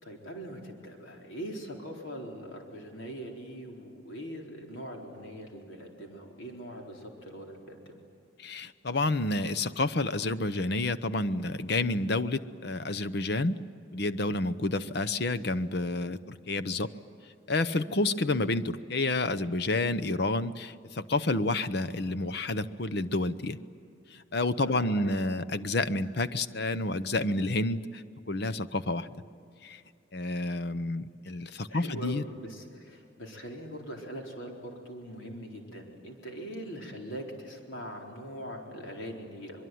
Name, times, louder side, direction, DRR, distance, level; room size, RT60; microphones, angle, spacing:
voice 1, 0.0-8.0 24.6-25.1 31.7-39.7, equal, 80° left, 1 dB, 4.3 m, -42 dB
voice 2, 8.4-13.6 13.9-16.9 17.5-23.6 24.1-28.0 28.3-29.1 29.6-29.8 30.1-32.2, left 2 dB, 55° left, 14 dB, 0.8 m, -29 dB
24.0 x 22.5 x 9.4 m, 2.6 s
head